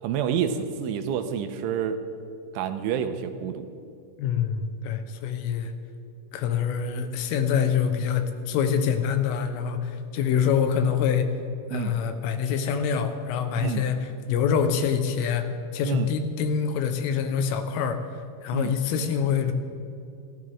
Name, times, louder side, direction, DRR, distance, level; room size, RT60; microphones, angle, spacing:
voice 1, 0.0-2.0 2.5-3.7 11.7-11.9 13.6-13.9 15.8-16.1 18.5-18.7, right 8 dB, 85° right, 8 dB, 3.2 m, -28 dB
voice 2, 4.2-5.7 6.3-11.3 11.7-15.5 15.7-18.0 18.4-19.5, left 7 dB, 85° left, 7 dB, 3.7 m, -25 dB
28.5 x 12.5 x 3.7 m, 2.6 s
omnidirectional pair, 5.6 m